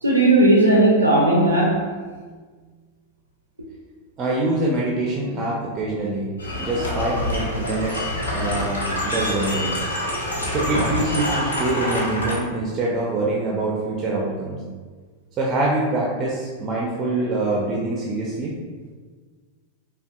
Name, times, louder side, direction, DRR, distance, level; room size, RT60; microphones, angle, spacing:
voice 1, 0.0-2.1 5.4-5.5, right 1 dB, 80° right, -2 dB, 0.4 m, -17 dB
voice 2, 4.2-6.3 6.6-8.1 8.3-9.8 10.5-14.6 15.4-18.5, right 2 dB, 30° right, -3 dB, 0.5 m, -25 dB
sound 1, 6.4-12.3, left 1 dB, 70° left, 0.8 m, -26 dB
5.2 x 2.3 x 2.3 m, 1.5 s
figure-of-eight pair, 90°, 0 cm